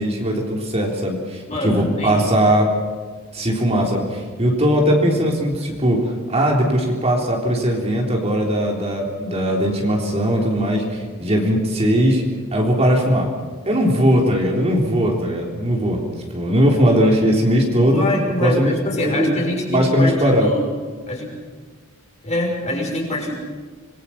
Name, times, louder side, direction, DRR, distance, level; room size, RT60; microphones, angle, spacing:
voice 1, 0.0-2.8 3.3-12.2 12.5-13.3 13.7-16.0 16.3-18.1 18.4-19.4 19.7-20.5, equal, 30° right, -1 dB, 3.6 m, -19 dB
voice 2, 1.5-2.2 4.8-5.0 17.8-20.7 21.1-21.4 22.2-23.3, left 1 dB, 35° left, 0 dB, 6.1 m, -25 dB
26.5 x 21.5 x 5.8 m, 1.4 s
head